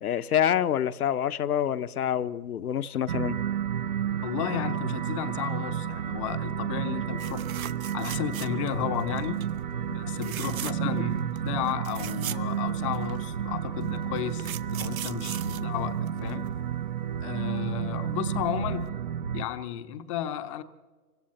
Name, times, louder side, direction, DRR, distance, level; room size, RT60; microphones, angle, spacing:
voice 1, 0.0-3.4, left 9 dB, 70° left, 0.9 m, -27 dB
sound 1, 3.1-19.5, right 9 dB, 30° right, 0.5 m, -31 dB
voice 2, 4.2-7.4 7.9-9.5 9.9-16.5 17.2-18.9 19.3-20.6, left 10 dB, 20° left, 0.7 m, -33 dB
sound 2, 7.2-8.8 9.2-9.5 10.1-11.0 11.4-11.5 11.7-13.2 13.9-16.5 18.4-18.6 18.9-19.0, right 10 dB, 60° right, 0.8 m, -39 dB
26.5 x 24.5 x 4.3 m
hypercardioid pair, 135°, 47 cm